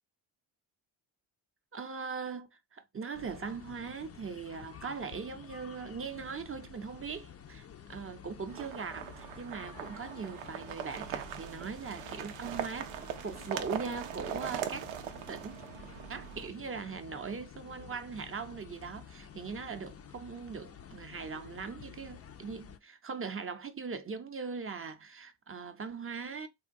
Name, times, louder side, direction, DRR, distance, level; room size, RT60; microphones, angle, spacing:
voice 1, 1.7-14.9 15.3-15.6 16.1-26.5, right 5 dB, 30° right, 0.6 m, -40 dB
sound 1, 3.1-22.8, left 8 dB, 35° left, 0.4 m, -51 dB
sound 2, 8.5-16.5, right 9 dB, 85° right, 0.5 m, -41 dB
3.5 x 2.2 x 2.6 m
supercardioid pair, 55°, 47 cm